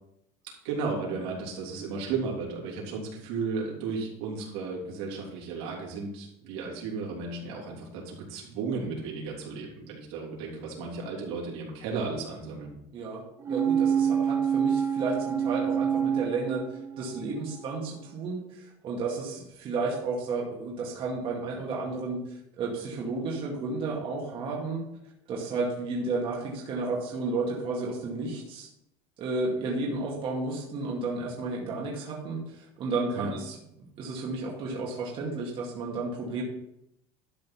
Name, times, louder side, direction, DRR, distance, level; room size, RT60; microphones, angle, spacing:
voice 1, 0.6-12.7 33.1-33.3, right 4 dB, 85° right, -2 dB, 3.3 m, -34 dB
voice 2, 12.9-24.8 25.3-28.7 29.2-33.6 34.0-36.4, right 3 dB, 40° right, -3 dB, 2.1 m, -32 dB
sound 1, 13.4-17.2 17.6-17.7, right 8 dB, 20° right, 0.4 m, -26 dB
12.0 x 4.2 x 5.7 m, 0.79 s
cardioid pair, 155°, 14 cm